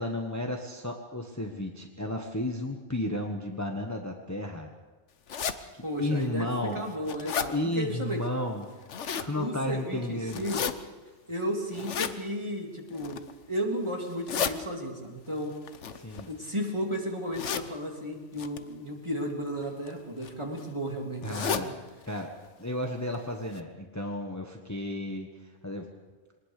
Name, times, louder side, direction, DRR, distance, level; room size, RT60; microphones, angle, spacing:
voice 1, 0.0-4.7 5.7-6.8 7.5-8.7 9.2-10.4 16.0-16.3 21.2-21.7 22.1-22.3 22.6-25.3 25.6-25.9, left 1 dB, 15° left, 3 dB, 1.3 m, -33 dB
sound 1, 5.3-5.6 6.2-6.3 6.7-7.5 8.6-9.3 10.3-10.7 11.7-12.1 12.9-13.3 14.0-14.5 15.6-16.6 17.3-17.7 18.4-18.6 19.6-19.9 20.2-20.3 20.6-20.7 21.2-21.7 22.1-22.2 22.5-22.6 23.1-23.2 23.5-23.6, left 7 dB, 85° left, 1.3 m, -32 dB
voice 2, 5.8-8.2 9.3-10.6 11.3-15.5 16.3-21.6, equal, 25° right, 0 dB, 3.3 m, -34 dB
23.0 x 19.5 x 6.7 m, 1.3 s
omnidirectional pair, 1.2 m